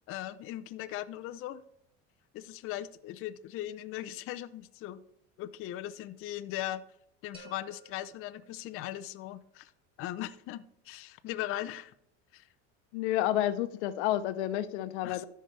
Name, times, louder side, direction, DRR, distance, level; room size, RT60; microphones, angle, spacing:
voice 1, 0.1-1.6 2.3-5.0 5.4-6.8 7.2-9.7 10.0-11.9 12.3-12.5 15.0-15.2, left 13 dB, 40° left, 11 dB, 0.5 m, -39 dB
sound 1, 7.3-9.2, right 3 dB, 15° right, 2.7 m, -55 dB
voice 2, 12.9-15.2, left 13 dB, 75° left, 12 dB, 0.8 m, -30 dB
14.0 x 5.6 x 3.3 m, 0.75 s
supercardioid pair, 125°, 34 cm